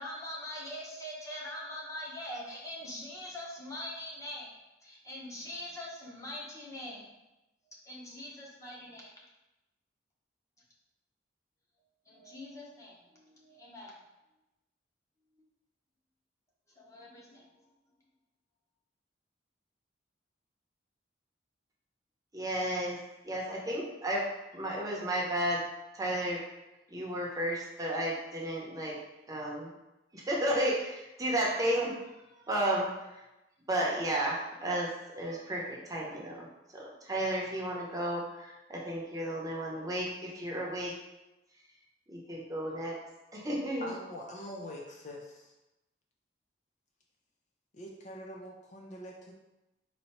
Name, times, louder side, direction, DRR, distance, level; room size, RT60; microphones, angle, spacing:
voice 1, 0.0-4.5 4.8-7.1 7.8-9.1 12.1-13.9 16.8-17.5, left 1 dB, 15° left, -4 dB, 1.0 m, -43 dB
voice 2, 22.3-23.0 23.2-24.2 24.5-25.6 25.9-26.4 26.9-29.0 29.3-29.7 30.1-32.1 32.5-33.2 33.7-36.5 36.7-40.9 42.1-43.0 43.3-43.9, right 1 dB, 20° right, -4 dB, 0.8 m, -33 dB
voice 3, 43.8-45.5 47.7-49.3, equal, 40° left, -1 dB, 0.5 m, -44 dB
4.3 x 2.7 x 4.3 m, 0.98 s
head